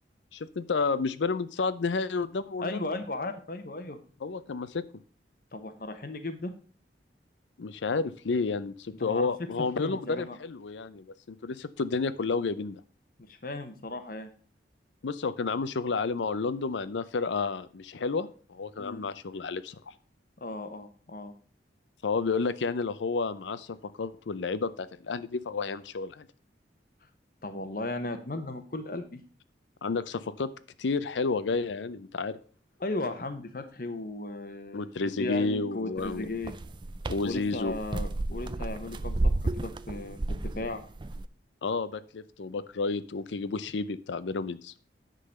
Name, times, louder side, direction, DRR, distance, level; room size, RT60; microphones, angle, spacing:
voice 1, 0.3-2.9 4.2-4.8 7.6-12.8 15.0-19.9 22.0-26.3 29.8-30.5 30.8-32.4 34.7-36.3 37.1-37.7 41.6-44.7, left 4 dB, 90° left, 15 dB, 0.5 m, -31 dB
voice 2, 2.6-4.0 5.5-6.5 9.0-10.4 13.3-14.3 18.8-19.0 20.4-21.3 27.4-29.2 32.8-34.9 35.2-36.5 37.2-40.8, left 2 dB, 50° left, 8 dB, 0.9 m, -36 dB
sound 1, 36.0-41.2, right 2 dB, 25° right, 0.4 m, -32 dB
9.8 x 3.9 x 6.4 m, 0.43 s
head